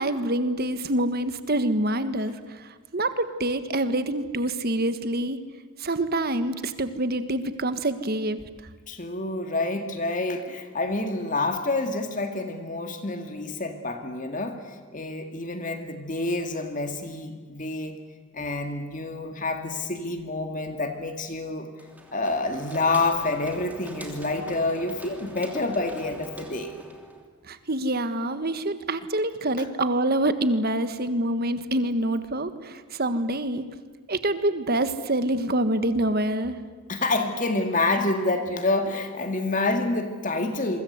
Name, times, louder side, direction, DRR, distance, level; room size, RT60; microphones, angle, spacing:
voice 1, 0.0-5.4 5.8-8.4 27.5-33.7 34.1-36.6, right 1 dB, 45° right, 11 dB, 1.5 m, -26 dB
voice 2, 8.9-18.0 18.3-21.7 22.1-26.8 29.6-29.7 36.9-40.8, left 2 dB, 35° left, 6 dB, 2.0 m, -28 dB
sound 1, 21.8-27.3, right 1 dB, 5° right, 2.9 m, -43 dB
27.5 x 24.0 x 8.1 m, 1.5 s
head